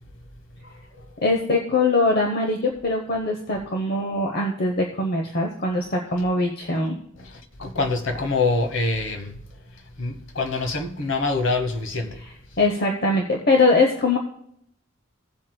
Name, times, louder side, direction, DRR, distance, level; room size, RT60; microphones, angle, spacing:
voice 1, 0.6-1.0 7.2-9.4 10.0-12.2, left 3 dB, 65° left, 1.1 m, -26 dB
voice 2, 1.2-7.0 12.6-14.2, left 2 dB, 50° left, 0.9 m, -22 dB
17.0 x 7.7 x 2.3 m
head